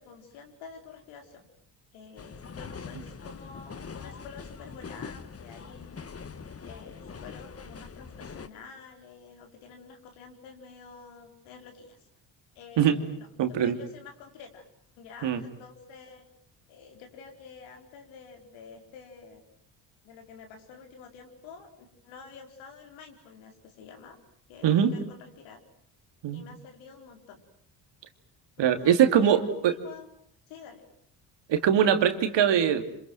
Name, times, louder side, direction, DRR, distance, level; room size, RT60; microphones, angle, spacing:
voice 1, 0.0-1.5 1.9-6.0 6.6-12.0 12.5-13.3 13.6-14.7 15.0-16.2 16.7-19.4 20.0-24.2 24.5-25.6 26.3-27.4 28.6-28.9 29.2-30.1 30.5-30.8, left 5 dB, 85° left, 3 dB, 4.9 m, -48 dB
sound 1, 2.2-8.5, left 5 dB, 30° left, 1.6 m, -43 dB
voice 2, 13.4-13.8 15.2-15.4 24.6-24.9 26.2-26.4 28.6-29.7 31.5-32.8, right 9 dB, 65° right, 8 dB, 2.8 m, -22 dB
27.0 x 26.5 x 7.7 m, 0.68 s
supercardioid pair, 70°, 46 cm